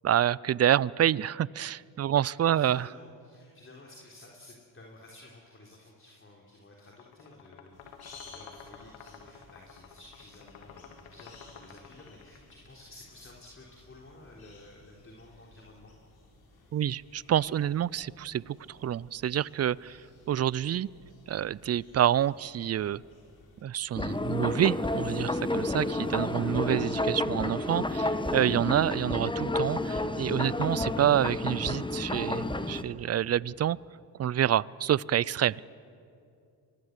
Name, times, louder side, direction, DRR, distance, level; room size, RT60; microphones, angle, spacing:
voice 1, 0.0-2.9 16.7-20.0 20.3-20.9 21.3-23.0 23.6-33.8 34.2-35.6, right 10 dB, 35° right, 24 dB, 0.5 m, -27 dB
voice 2, 2.0-15.9, left 2 dB, 25° left, -2 dB, 3.8 m, -53 dB
sound 1, 6.8-12.5, left 7 dB, 90° left, 2.2 m, -51 dB
sound 2, 7.7-23.6, left 3 dB, 55° left, 6.4 m, -57 dB
sound 3, 23.9-32.8, left 2 dB, 10° left, 1.3 m, -30 dB
24.5 x 20.5 x 8.2 m, 2.5 s
supercardioid pair, 70°, 45 cm